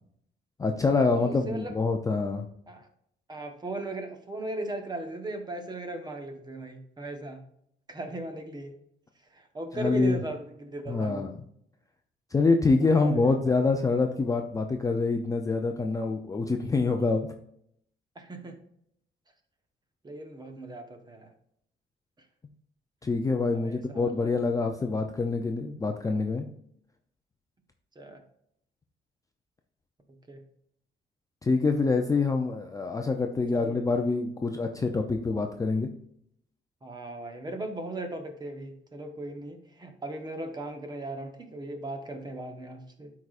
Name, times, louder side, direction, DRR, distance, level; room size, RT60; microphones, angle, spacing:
voice 1, 0.6-2.5 9.8-10.2 10.9-11.4 12.3-17.3 23.0-26.5 31.4-35.9, left 3 dB, 15° left, 4 dB, 0.4 m, -26 dB
voice 2, 1.1-1.8 2.7-2.9 3.3-7.4 7.9-8.8 9.3-11.3 12.8-13.4 18.1-18.6 20.0-21.3 23.5-24.3 27.9-28.2 30.1-30.5 33.5-33.8 36.8-43.1, right 2 dB, 20° right, 5 dB, 1.0 m, -38 dB
12.0 x 4.8 x 2.4 m, 0.71 s
cardioid pair, 150°, 19 cm